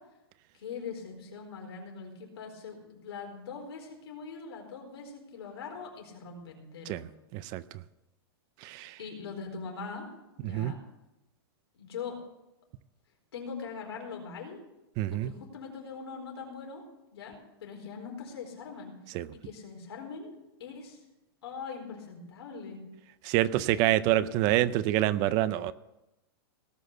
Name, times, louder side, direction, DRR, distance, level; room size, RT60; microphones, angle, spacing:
voice 1, 0.5-7.0 9.0-10.1 10.3-10.8 11.7-12.2 13.3-14.6 15.1-16.8 17.1-18.9 19.3-20.3 20.6-21.0 21.4-22.8, left 5 dB, 85° left, 1 dB, 4.4 m, -42 dB
voice 2, 8.6-8.9 10.4-10.7 15.0-15.3 19.1-19.3 23.2-25.7, right 14 dB, 30° right, 16 dB, 0.4 m, -26 dB
18.5 x 6.3 x 6.8 m, 0.93 s
supercardioid pair, 160°, 13 cm